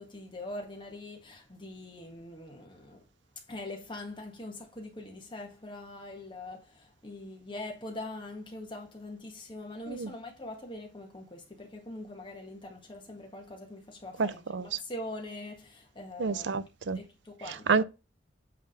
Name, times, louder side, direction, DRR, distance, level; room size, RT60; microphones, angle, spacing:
voice 1, 0.0-3.0 3.5-16.6 16.9-17.8, left 1 dB, 25° left, 1.5 m, -43 dB
voice 2, 14.2-14.7 16.2-17.0 17.7-17.8, right 4 dB, 80° right, 0.5 m, -28 dB
8.4 x 3.5 x 5.5 m
head